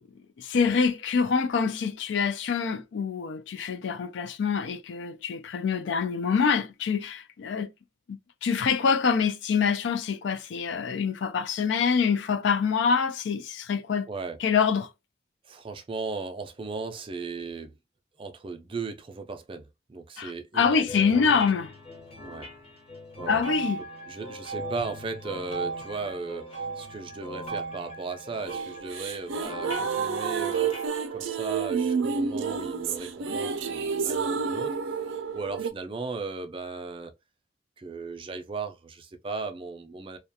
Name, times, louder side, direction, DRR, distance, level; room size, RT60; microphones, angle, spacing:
voice 1, 0.4-7.7 8.4-14.1 14.4-14.9 20.2-21.7 23.3-23.8, left 6 dB, 70° left, 0.4 m, -25 dB
voice 2, 14.1-14.4 15.4-17.7 18.2-19.6 19.9-21.2 22.2-22.5 23.2-23.4 24.1-30.7 31.1-37.1 37.8-40.2, right 4 dB, 25° right, 0.4 m, -36 dB
sound 1, 20.9-30.9, right 2 dB, 30° left, 0.7 m, -38 dB
sound 2, 28.5-35.7, right 6 dB, 90° right, 0.4 m, -30 dB
2.4 x 2.2 x 2.6 m
head